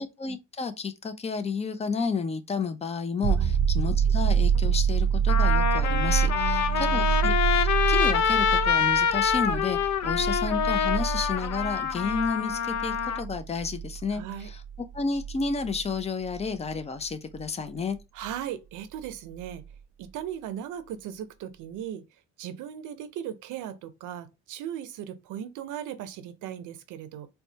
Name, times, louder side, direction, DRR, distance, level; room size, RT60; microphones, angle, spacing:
voice 1, 0.0-7.3 7.6-14.6 14.9-18.0, left 5 dB, 20° left, 0.5 m, -31 dB
sound 1, 3.2-16.7 19.5-19.6, right 7 dB, 45° right, 0.4 m, -27 dB
Trumpet, 4.6-4.7 5.3-13.2, left 8 dB, 70° left, 0.5 m, -26 dB
voice 2, 6.3-7.2 14.1-14.5 18.1-19.6 20.0-22.1 22.4-27.3, right 10 dB, 90° right, 0.6 m, -37 dB
4.1 x 2.3 x 2.7 m
cardioid pair, 90°, 30 cm